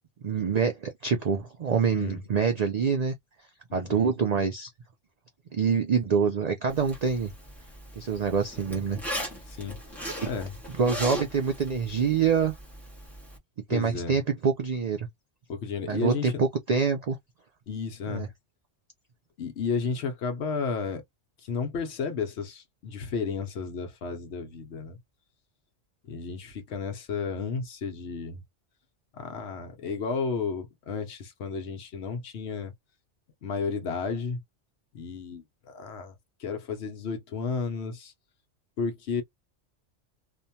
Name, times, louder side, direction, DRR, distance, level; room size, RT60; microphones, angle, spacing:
voice 1, 0.2-3.1 3.7-4.7 5.5-7.3 8.0-9.0 10.2-10.3 10.8-12.6 13.7-15.1 15.9-17.2 18.1-18.3, right 6 dB, 65° right, 0.4 m, -26 dB
voice 2, 1.9-2.2 3.7-4.1 9.5-9.8 10.2-10.5 13.7-14.2 15.5-16.4 17.7-18.3 19.4-21.0 21.4-25.0 26.0-28.4 29.1-32.7 33.4-34.4 34.9-36.1 36.4-38.1 38.8-39.2, left 5 dB, 65° left, 1.0 m, -32 dB
Zipper (clothing), 6.7-13.4, equal, ahead, 0.8 m, -39 dB
2.6 x 2.2 x 2.7 m
omnidirectional pair, 1.2 m